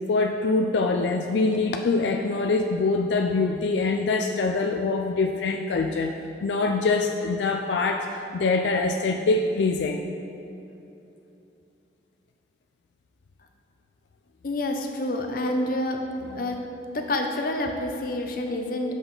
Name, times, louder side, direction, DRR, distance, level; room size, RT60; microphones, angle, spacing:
voice 1, 0.1-10.1 16.3-16.4, left 3 dB, 80° left, 3 dB, 0.4 m, -24 dB
voice 2, 14.4-16.1 16.4-16.6 16.9-18.9, left 1 dB, 50° left, 3 dB, 0.7 m, -28 dB
7.8 x 6.2 x 3.9 m, 2.9 s
head